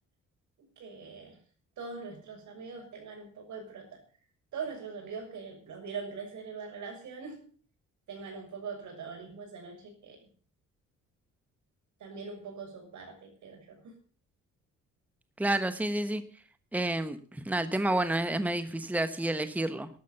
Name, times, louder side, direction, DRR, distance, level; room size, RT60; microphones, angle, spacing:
voice 1, 0.6-1.4 1.8-4.0 4.5-7.4 8.1-10.3 12.0-13.9, right 5 dB, 70° right, 4 dB, 6.8 m, -42 dB
voice 2, 15.4-16.2 16.7-19.9, right 1 dB, 5° right, 11 dB, 1.2 m, -29 dB
12.5 x 12.5 x 7.0 m, 0.43 s
cardioid pair, 90°, 30 cm